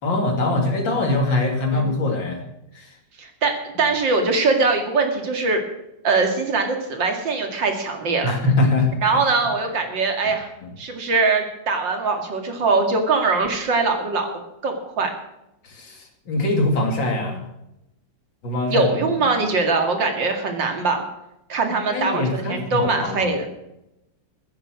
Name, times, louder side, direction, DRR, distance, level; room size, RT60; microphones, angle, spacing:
voice 1, 0.0-2.4 2.7-2.9 8.2-8.9 10.6-10.7 15.6-17.4 18.4-18.9 21.9-23.5, left 2 dB, 75° left, 3 dB, 3.3 m, -22 dB
voice 2, 3.2-5.6 6.0-8.3 9.0-10.5 10.8-14.3 14.6-15.1 18.7-21.0 21.5-23.5, right 3 dB, 75° right, 4 dB, 3.0 m, -22 dB
15.5 x 10.0 x 6.3 m, 0.88 s
omnidirectional pair, 2.0 m